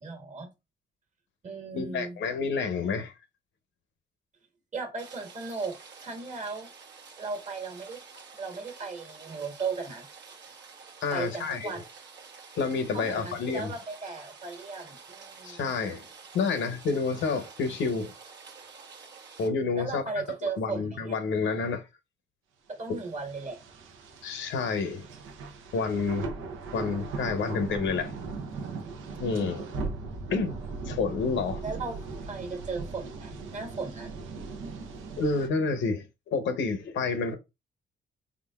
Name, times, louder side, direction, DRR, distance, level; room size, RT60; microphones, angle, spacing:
voice 1, 0.0-0.5 1.4-2.2 4.7-6.7 7.2-8.0 8.3-10.1 11.1-11.8 12.9-15.6 19.8-21.2 22.7-23.6 31.6-34.1, right 4 dB, 35° right, 1.4 m, -36 dB
voice 2, 1.7-3.1 11.0-11.8 12.5-13.7 15.4-16.1 16.3-18.1 19.4-20.2 20.6-21.8 24.2-25.1 25.7-26.3 26.7-28.1 29.2-29.7 30.3-30.6 30.9-31.6 35.2-37.3, left 4 dB, 70° left, 0.8 m, -29 dB
Rain, 5.0-19.5, right 5 dB, 60° right, 1.1 m, -49 dB
sound 1, 22.8-35.5, right 4 dB, 85° right, 0.8 m, -39 dB
3.8 x 3.6 x 2.3 m
cardioid pair, 90°, 20 cm